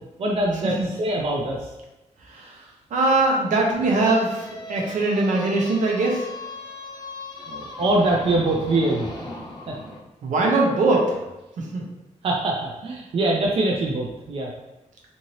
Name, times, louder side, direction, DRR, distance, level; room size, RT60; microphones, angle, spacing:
voice 1, 0.2-1.7 7.5-9.1 9.7-9.8 12.2-14.5, right 2 dB, 50° right, -1 dB, 0.4 m, -23 dB
voice 2, 2.9-6.3 10.2-11.2 11.6-11.8, right 2 dB, 80° right, -1 dB, 0.7 m, -21 dB
sound 1, 3.7-10.0, left 2 dB, 30° left, 0.6 m, -38 dB
2.7 x 2.6 x 3.0 m, 0.98 s
wide cardioid pair, 145°, 13 cm